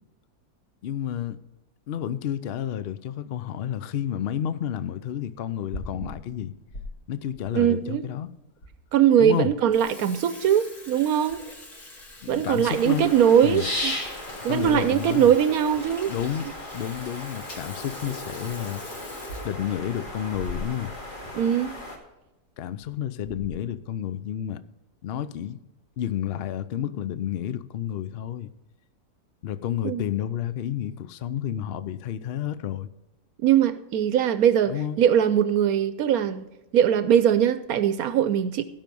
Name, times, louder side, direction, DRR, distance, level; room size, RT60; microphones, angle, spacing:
voice 1, 0.8-1.4 1.9-6.5 7.1-8.3 9.2-9.5 12.2-13.1 13.4-13.7 14.5-15.3 16.1-16.5 16.7-18.8 19.4-20.9 22.6-24.6 25.0-25.6 26.0-28.5 29.4-32.9 34.7-35.0, left 10 dB, 55° left, 0.7 m, -30 dB
Water tap faucet / Sink (filling or washing), 5.5-6.9 7.3-7.4 8.1-8.2 8.6-8.7 9.1-9.3 9.6-21.0 21.3-21.4 21.7-21.8 22.6-22.9 23.2-23.7, left 1 dB, 80° left, 3.0 m, -42 dB
voice 2, 7.5-8.0 8.9-11.4 12.3-14.0 14.4-16.1 21.3-21.8 29.8-30.0 33.4-36.4 36.7-38.6, right 9 dB, 75° right, 1.1 m, -21 dB
sound 1, 12.6-22.0, left 1 dB, 35° left, 2.2 m, -36 dB
17.0 x 5.6 x 5.3 m
omnidirectional pair, 1.6 m